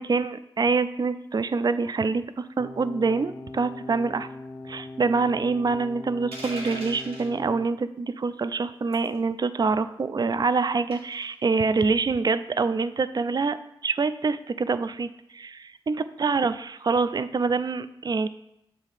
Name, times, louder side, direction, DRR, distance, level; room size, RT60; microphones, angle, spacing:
voice 1, 0.0-4.3 4.7-13.6 13.8-18.3, right 4 dB, 45° right, 13 dB, 0.4 m, -25 dB
sound 1, 2.6-7.7, left 2 dB, 20° left, 0.5 m, -40 dB
sound 2, 6.3-7.3 8.9-9.2 10.9-11.2, right 1 dB, 85° right, 1.5 m, -39 dB
7.3 x 2.8 x 4.8 m, 0.83 s
cardioid pair, 45°, 10 cm